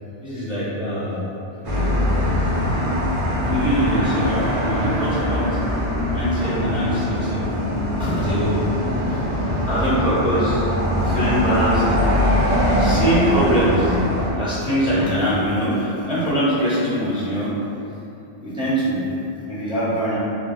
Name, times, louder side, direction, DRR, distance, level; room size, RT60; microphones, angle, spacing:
voice 1, 0.2-1.4 3.4-5.5 6.1-7.5 8.0-9.2 9.7-10.7 11.0-11.8 12.8-14.0 14.4-17.5 18.4-19.1 19.5-20.2, equal, 5° right, -12 dB, 0.7 m, -23 dB
sound 1, 1.6-14.3, left 1 dB, 45° right, 0.5 m, -22 dB
2.3 x 2.0 x 3.6 m, 2.7 s
omnidirectional pair, 1.1 m